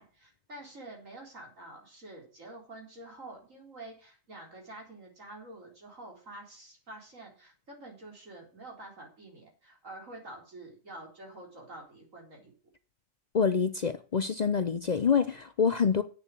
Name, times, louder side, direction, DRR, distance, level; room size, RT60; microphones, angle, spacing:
voice 1, 0.0-12.5, right 2 dB, 75° right, 4.5 m, -48 dB
voice 2, 13.3-16.0, left 6 dB, 50° left, 0.5 m, -26 dB
8.6 x 7.0 x 8.3 m
omnidirectional pair, 1.4 m